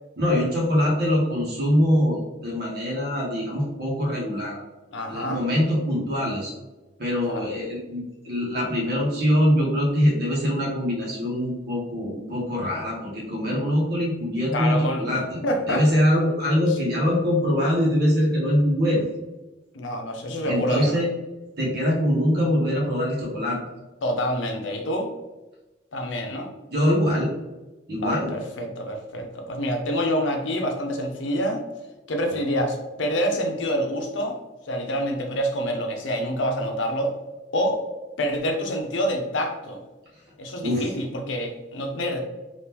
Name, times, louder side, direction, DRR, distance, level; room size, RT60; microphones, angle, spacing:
voice 1, 0.2-4.6 5.1-6.5 7.0-15.4 15.7-19.1 20.4-21.1 21.6-23.6 26.7-27.3 27.9-28.3 40.6-40.9, equal, 55° right, -3 dB, 0.9 m, -23 dB
voice 2, 4.9-5.4 7.2-7.5 14.5-15.2 15.4-15.8 19.7-21.0 24.0-25.1 25.9-26.5 27.9-31.6 32.1-34.4 34.7-37.1 37.5-37.8 38.2-39.8 40.4-42.3, equal, 85° left, 3 dB, 0.6 m, -27 dB
3.6 x 2.5 x 2.9 m, 1.1 s
head